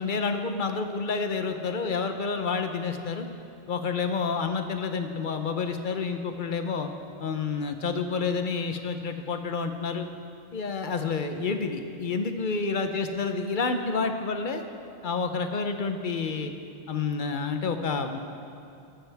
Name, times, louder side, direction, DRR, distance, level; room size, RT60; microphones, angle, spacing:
voice 1, 0.0-3.3 3.7-6.9 7.2-10.1 10.5-14.6 15.0-16.5 16.9-18.2, left 4 dB, 50° left, 7 dB, 0.8 m, -29 dB
13.5 x 13.5 x 3.4 m, 2.5 s
omnidirectional pair, 1.3 m